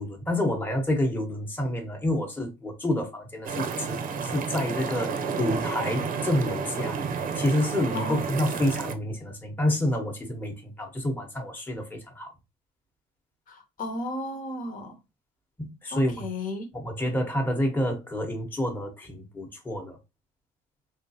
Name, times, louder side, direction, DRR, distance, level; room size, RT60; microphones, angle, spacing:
voice 1, 0.0-12.3 15.6-16.3 16.7-20.0, left 1 dB, 10° left, 1.0 m, -28 dB
sound 1, 3.4-8.9, right 5 dB, 55° right, 0.6 m, -31 dB
voice 2, 13.5-15.0 15.9-16.7, left 2 dB, 55° left, 1.1 m, -34 dB
3.6 x 3.0 x 2.8 m
cardioid pair, 110°, 17 cm